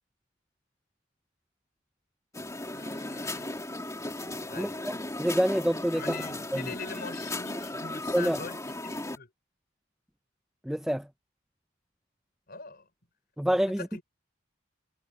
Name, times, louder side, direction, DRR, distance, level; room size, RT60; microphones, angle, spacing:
sound 1, 2.3-9.2, left 1 dB, 15° left, 2.8 m, -36 dB
voice 1, 2.7-3.5 4.5-4.8 5.9-9.3 12.5-12.9 13.8-14.0, left 4 dB, 50° left, 4.6 m, -42 dB
voice 2, 5.2-6.0 6.5-6.6 8.1-8.4 10.7-11.1 13.4-14.0, equal, 5° right, 0.5 m, -26 dB
head